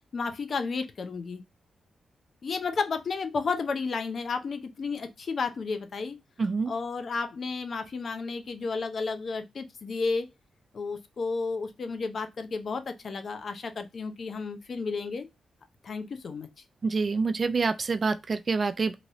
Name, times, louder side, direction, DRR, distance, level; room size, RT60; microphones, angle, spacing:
voice 1, 0.1-1.4 2.4-6.2 6.7-10.3 10.7-15.3 15.8-16.5, left 4 dB, 60° left, 0.6 m, -32 dB
voice 2, 6.4-6.7 16.8-19.0, right 4 dB, 45° right, 0.4 m, -27 dB
3.0 x 2.9 x 2.6 m
cardioid pair, 75°, 0 cm